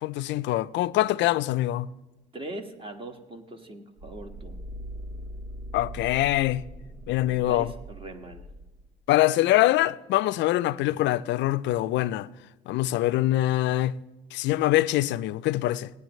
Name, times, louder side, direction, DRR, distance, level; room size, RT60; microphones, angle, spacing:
voice 1, 0.0-1.9 5.7-6.7 7.1-7.7 9.1-12.3 12.7-14.0 14.3-15.9, left 15 dB, 65° left, 0.5 m, -24 dB
voice 2, 2.3-4.5 7.3-8.5, right 2 dB, 25° right, 1.6 m, -41 dB
sound 1, 4.0-8.9, right 1 dB, 70° right, 3.2 m, -41 dB
17.5 x 9.7 x 3.2 m
supercardioid pair, 90°, 20 cm